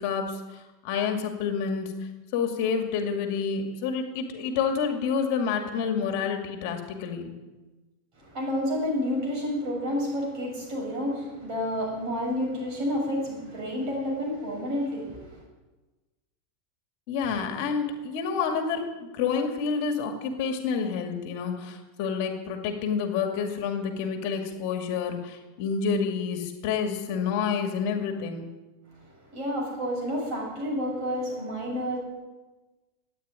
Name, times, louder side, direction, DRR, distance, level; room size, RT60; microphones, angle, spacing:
voice 1, 0.0-1.9 2.3-7.3 17.1-28.5, left 6 dB, 50° left, 5 dB, 2.2 m, -29 dB
voice 2, 8.2-15.4 29.3-32.0, equal, 40° right, -1 dB, 7.3 m, -30 dB
14.0 x 9.4 x 9.7 m, 1.2 s
supercardioid pair, 160°, 0 cm